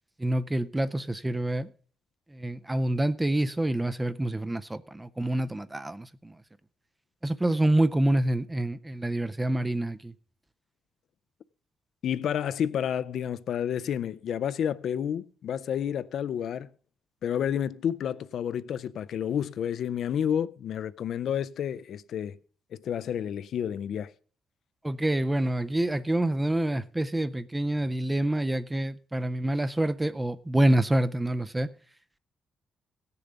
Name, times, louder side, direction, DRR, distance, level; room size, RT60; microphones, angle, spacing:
voice 1, 0.2-1.7 2.3-6.3 7.2-10.1 24.8-31.7, right 1 dB, 10° right, 0.4 m, -27 dB
voice 2, 12.0-16.7 17.2-22.4 22.7-24.1, left 9 dB, 60° left, 0.4 m, -30 dB
16.0 x 6.9 x 5.2 m
cardioid pair, 125°, 0 cm